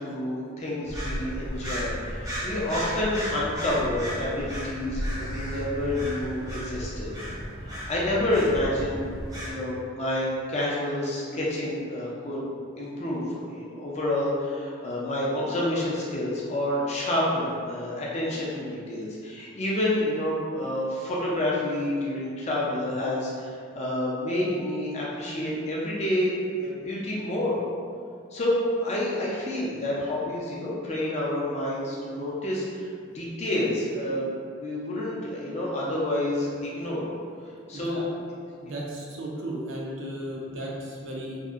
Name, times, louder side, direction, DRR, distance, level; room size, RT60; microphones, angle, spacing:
voice 1, 0.0-7.1 7.6-9.2 9.4-12.4 12.8-26.3 26.6-27.6 28.3-32.9 33.1-34.3 34.6-37.1 37.7-38.0 38.6-38.7, left 1 dB, 35° left, -6 dB, 0.5 m, -28 dB
sound 1, 0.8-9.5, equal, 15° right, 0.6 m, -34 dB
voice 2, 37.7-38.1 38.6-41.4, right 1 dB, 75° right, -2 dB, 0.5 m, -35 dB
2.8 x 2.5 x 2.4 m, 2.2 s
head